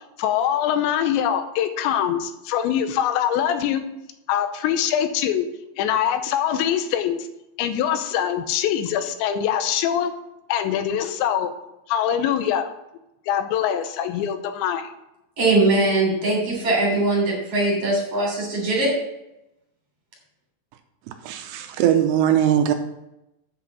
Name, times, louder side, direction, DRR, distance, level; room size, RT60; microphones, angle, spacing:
voice 1, 0.2-3.9 4.3-5.5 5.8-7.3 7.6-10.1 10.5-11.5 11.9-12.7 13.3-14.9, left 9 dB, 90° left, 9 dB, 3.1 m, -23 dB
voice 2, 15.4-18.9, right 2 dB, 35° right, -2 dB, 4.0 m, -21 dB
voice 3, 21.2-22.7, right 10 dB, 85° right, 7 dB, 2.9 m, -20 dB
8.5 x 5.9 x 7.2 m, 0.89 s
omnidirectional pair, 5.1 m